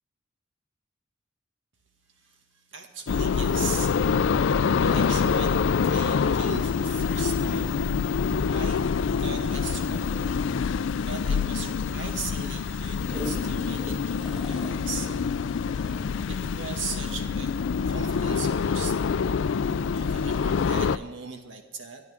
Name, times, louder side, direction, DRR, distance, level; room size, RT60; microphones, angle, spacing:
voice 1, 2.2-5.5 5.8-8.8 9.2-15.1 16.3-17.5 17.9-19.0 19.9-22.1, right 5 dB, 80° right, 4 dB, 1.9 m, -39 dB
sound 1, 3.1-21.0, left 6 dB, 75° left, 0.4 m, -26 dB
sound 2, 13.1-17.4 17.9-18.0, equal, 5° right, 0.6 m, -41 dB
22.5 x 12.0 x 3.5 m, 1.3 s
head